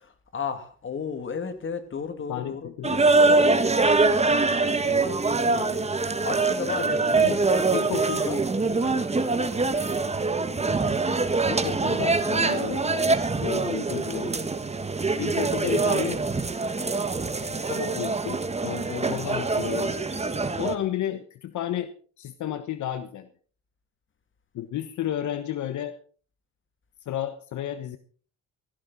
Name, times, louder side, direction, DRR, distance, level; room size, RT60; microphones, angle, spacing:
voice 1, 0.3-2.7 4.8-7.8 8.8-9.1, left 6 dB, 40° left, 2.6 m, -34 dB
voice 2, 2.3-3.1 6.7-6.9 7.2-7.4 7.7-8.4 11.4-13.1 13.4-14.3 15.2-16.2 17.7-20.1 20.4-23.3 24.5-25.9 27.0-28.0, left 11 dB, 75° left, 1.2 m, -32 dB
sound 1, 2.8-20.7, right 3 dB, 20° right, 1.5 m, -24 dB
16.5 x 15.5 x 4.1 m
cardioid pair, 90°, 30 cm